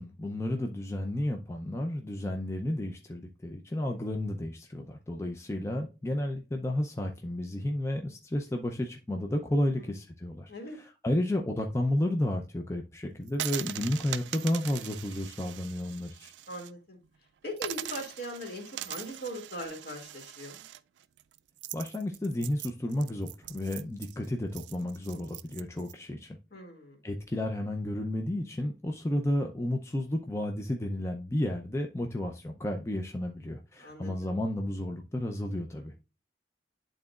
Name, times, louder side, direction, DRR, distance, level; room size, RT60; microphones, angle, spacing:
voice 1, 0.0-16.3 21.7-26.4 27.0-35.9, left 1 dB, 15° left, 0.5 m, -32 dB
sound 1, 13.3-16.7 17.0-17.1 17.6-25.9, right 13 dB, 85° right, 0.3 m, -41 dB
voice 2, 16.5-17.0 17.4-20.6 26.5-27.0 33.8-34.3, equal, 60° left, 2.2 m, -40 dB
11.0 x 3.9 x 2.4 m
head